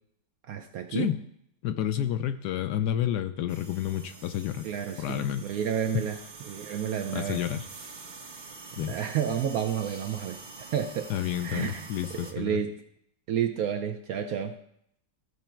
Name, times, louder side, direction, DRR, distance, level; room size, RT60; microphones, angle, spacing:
voice 1, 0.5-1.1 4.6-6.2 6.5-7.5 8.8-11.1 11.4-11.9 12.1-12.8 13.3-14.6, right 8 dB, 70° right, 7 dB, 0.9 m, -31 dB
voice 2, 1.6-4.7 5.0-5.4 7.1-7.7 8.8-8.9 11.1-12.6, left 11 dB, 75° left, 10 dB, 1.1 m, -30 dB
sound 1, 3.5-12.3, right 4 dB, 40° right, 0.6 m, -46 dB
14.0 x 4.9 x 4.4 m, 0.72 s
omnidirectional pair, 2.0 m